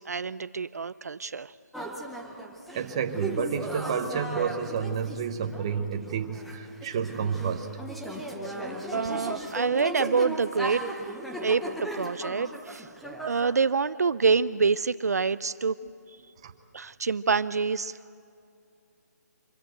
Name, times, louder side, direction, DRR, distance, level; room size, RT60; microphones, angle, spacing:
voice 1, 0.0-1.5 8.9-10.8 11.4-12.9 13.2-15.8 16.7-18.0, right 5 dB, 60° right, 15 dB, 0.5 m, -26 dB
sound 1, 1.7-13.6, right 1 dB, ahead, 0.6 m, -37 dB
voice 2, 2.7-7.7 16.4-16.5, right 7 dB, 20° right, 7 dB, 0.9 m, -30 dB
25.5 x 22.0 x 7.9 m, 2.6 s
hypercardioid pair, 175°, 10 cm